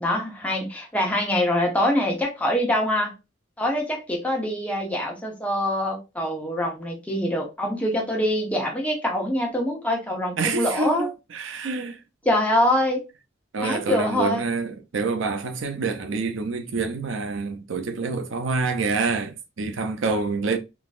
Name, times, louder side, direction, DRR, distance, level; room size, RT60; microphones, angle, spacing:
voice 1, 0.0-3.1 3.6-11.1 12.2-13.0 13.6-14.4, left 1 dB, 5° left, 0.9 m, -24 dB
voice 2, 10.4-12.0 13.5-20.6, right 4 dB, 75° right, 0.6 m, -27 dB
3.8 x 2.9 x 2.4 m
head